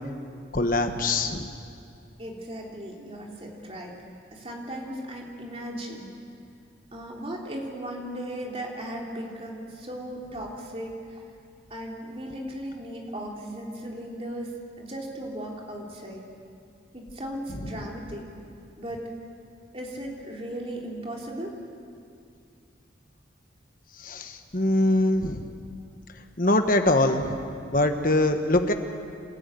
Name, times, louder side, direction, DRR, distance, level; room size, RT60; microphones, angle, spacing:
voice 1, 0.5-1.5 17.6-17.7 24.0-25.5 26.4-27.4 27.7-28.7, left 2 dB, 45° left, 6 dB, 1.4 m, -23 dB
voice 2, 2.2-3.9 4.3-6.1 6.9-10.9 11.7-14.5 14.8-16.2 16.9-18.3 18.8-19.1 19.7-21.6, right 1 dB, 30° right, -1 dB, 3.2 m, -36 dB
27.5 x 13.5 x 9.1 m, 2.4 s
head